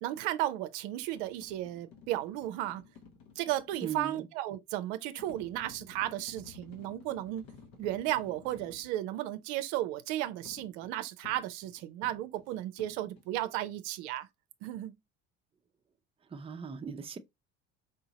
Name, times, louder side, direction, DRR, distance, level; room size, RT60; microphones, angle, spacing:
voice 1, 0.0-2.8 3.4-7.5 7.8-14.3 14.6-14.9, right 14 dB, 70° right, 0.6 m, -34 dB
sound 1, 1.0-3.9 5.2-8.9 10.5-13.4, left 5 dB, 65° left, 1.2 m, -54 dB
voice 2, 3.8-4.3 16.3-17.2, right 6 dB, 15° right, 0.5 m, -39 dB
4.9 x 2.7 x 2.8 m
hypercardioid pair, 70°, 37 cm